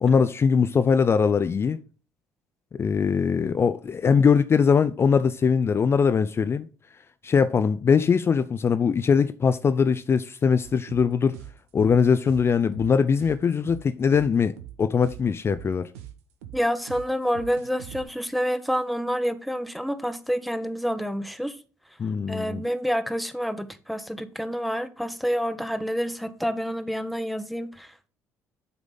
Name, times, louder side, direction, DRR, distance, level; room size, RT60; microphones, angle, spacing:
voice 1, 0.0-1.8 2.7-6.7 7.2-11.4 11.7-15.9 22.0-22.6, left 6 dB, 35° left, 0.4 m, -21 dB
sound 1, 10.6-18.0, right 11 dB, 80° right, 0.9 m, -43 dB
voice 2, 16.5-21.6 22.3-28.1, equal, ahead, 0.9 m, -28 dB
8.1 x 3.6 x 5.4 m
hypercardioid pair, 55°, 8 cm